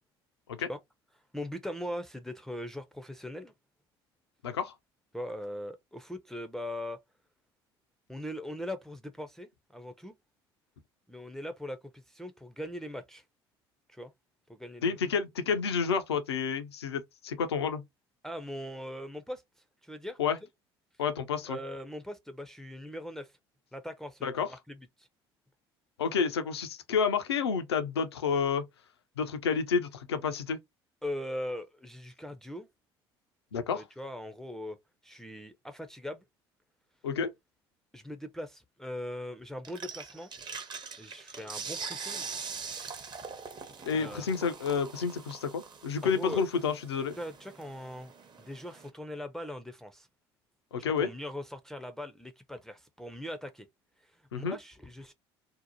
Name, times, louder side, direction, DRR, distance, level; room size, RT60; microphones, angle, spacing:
voice 1, 1.3-3.5 5.1-7.0 8.1-10.1 11.1-13.2 13.9-14.1 14.5-15.0 18.2-19.4 19.8-20.2 21.5-23.3 23.7-25.1 31.0-32.7 33.7-34.8 35.0-36.2 37.9-40.3 41.0-42.3 43.8-44.3 46.0-46.4 47.2-48.1 48.5-50.1 51.0-53.7 54.0-55.1, left 1 dB, 5° left, 0.4 m, -40 dB
voice 2, 14.8-17.8 20.2-20.4 21.0-21.6 24.2-24.5 26.0-28.6 29.2-30.6 33.5-33.8 37.0-37.3 43.8-47.2 50.7-51.1 54.3-54.6, left 6 dB, 85° left, 0.4 m, -30 dB
sound 1, 39.6-48.9, right 5 dB, 35° right, 0.7 m, -43 dB
2.7 x 2.0 x 2.7 m
hypercardioid pair, 60°, 13 cm